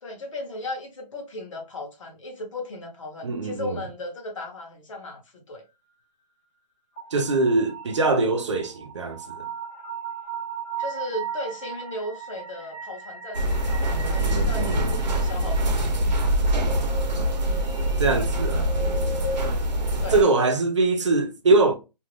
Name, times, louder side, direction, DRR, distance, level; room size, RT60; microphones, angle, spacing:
voice 1, 0.0-5.6 10.8-15.9 20.0-20.3, left 2 dB, 50° left, 0.9 m, -36 dB
voice 2, 3.2-3.7 7.1-9.4 14.2-14.9 18.0-18.7 20.1-21.7, right 3 dB, 45° right, 0.4 m, -22 dB
sound 1, 7.0-19.5, right 3 dB, 10° left, 0.6 m, -37 dB
sound 2, 13.3-20.2, right 1 dB, 85° right, 0.9 m, -24 dB
2.5 x 2.3 x 3.1 m
hypercardioid pair, 170°, 21 cm